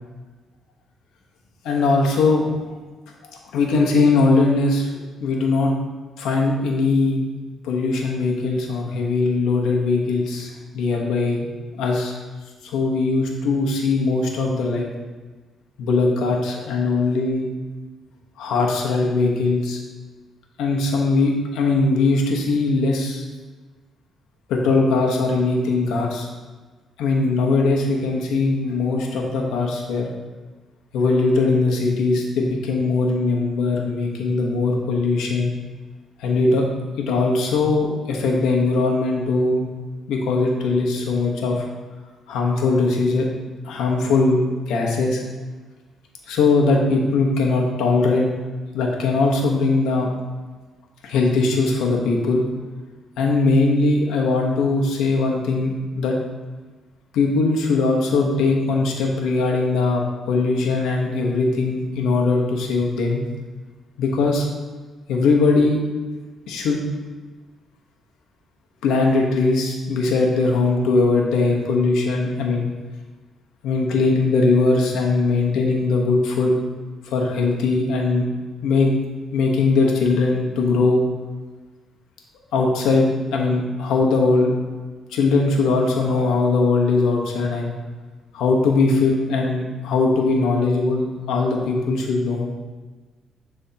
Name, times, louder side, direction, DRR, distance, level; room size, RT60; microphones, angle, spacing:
voice 1, 1.6-2.5 3.5-4.9 5.2-5.7 6.2-7.2 7.6-11.5 11.7-12.2 12.6-14.9 15.8-17.5 18.4-19.8 20.6-23.3 24.5-26.3 27.0-30.1 30.9-35.5 36.2-36.6 37.0-39.6 40.1-41.6 42.3-43.3 43.6-44.4 44.7-45.2 46.3-48.3 48.7-50.1 51.0-52.4 53.2-56.2 57.1-60.0 60.3-63.2 64.0-64.5 65.1-65.8 66.5-66.8 68.8-72.7 73.6-76.5 77.0-78.2 78.6-78.9 79.3-81.0 82.5-84.5 85.1-87.7 88.3-92.5, left 3 dB, 90° left, 0 dB, 1.0 m, -20 dB
10.0 x 3.5 x 2.8 m, 1.3 s
cardioid pair, 90°, 0 cm